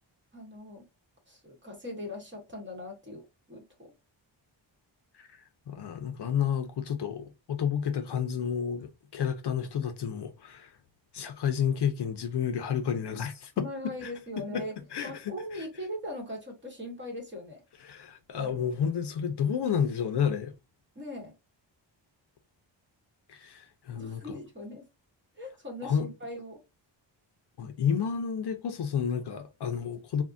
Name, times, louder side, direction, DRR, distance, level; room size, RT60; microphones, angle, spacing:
voice 1, 0.3-0.9 1.3-3.2 3.5-3.9 13.6-14.7 15.0-17.6 18.3-18.7 20.9-21.3 23.9-24.9 25.4-26.6, left 1 dB, 25° right, 0.9 m, -40 dB
voice 2, 5.1-10.7 11.1-14.1 14.4-14.7 14.9-15.6 17.8-20.5 23.3-24.4 25.8-26.1 27.6-30.2, left 7 dB, 60° left, 0.5 m, -31 dB
3.5 x 2.1 x 2.4 m
wide cardioid pair, 165°, 46 cm